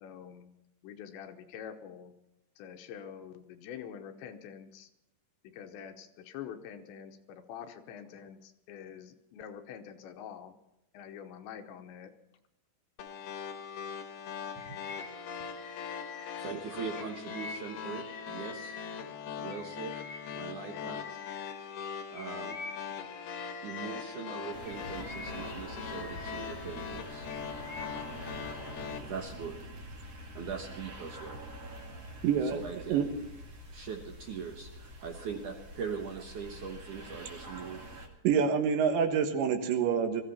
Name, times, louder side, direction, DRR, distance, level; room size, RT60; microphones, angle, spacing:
voice 1, 0.0-0.5 0.8-2.1 2.6-4.9 5.5-10.5 10.9-12.1, left 8 dB, 85° left, 6 dB, 3.2 m, -46 dB
sound 1, 13.0-29.0, left 7 dB, 65° left, 2.4 m, -41 dB
Bird vocalization bird call bird song, 14.6-19.1 19.5-24.2 24.6-26.7 27.1-28.1, left 4 dB, 50° left, 1.9 m, -47 dB
voice 2, 16.4-18.8 19.4-19.9 20.3-21.2 22.1-22.6 23.6-27.3 29.0-29.7 30.3-31.4 32.5-33.2 33.7-37.8, right 6 dB, 65° right, 2 dB, 2.1 m, -41 dB
sound 2, 24.5-38.1, right 1 dB, 45° right, 2.5 m, -45 dB
voice 3, 32.2-32.6 32.9-33.1 38.3-40.2, right 7 dB, 80° right, 6 dB, 3.6 m, -26 dB
20.5 x 14.5 x 4.3 m, 0.87 s
omnidirectional pair, 5.2 m